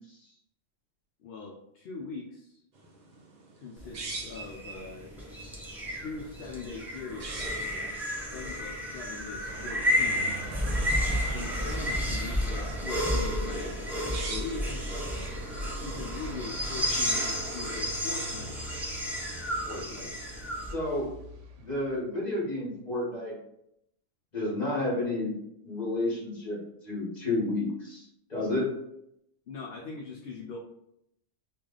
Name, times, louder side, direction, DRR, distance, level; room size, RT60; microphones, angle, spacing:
voice 1, 1.2-2.6 3.6-5.1 5.9-10.4 11.3-15.2 15.8-18.6 29.5-30.6, left 4 dB, 60° left, -1 dB, 0.8 m, -41 dB
sound 1, 2.7-17.4, right 3 dB, 50° right, 0.6 m, -46 dB
sound 2, 3.8-20.7, equal, ahead, 0.4 m, -32 dB
sound 3, 9.5-22.0, right 3 dB, 80° right, 0.9 m, -44 dB
voice 2, 19.6-20.1 20.7-21.1 21.6-23.4 24.3-25.3 25.6-28.7, left 2 dB, 35° left, -5 dB, 1.5 m, -31 dB
3.2 x 2.5 x 3.8 m, 0.77 s
omnidirectional pair, 1.3 m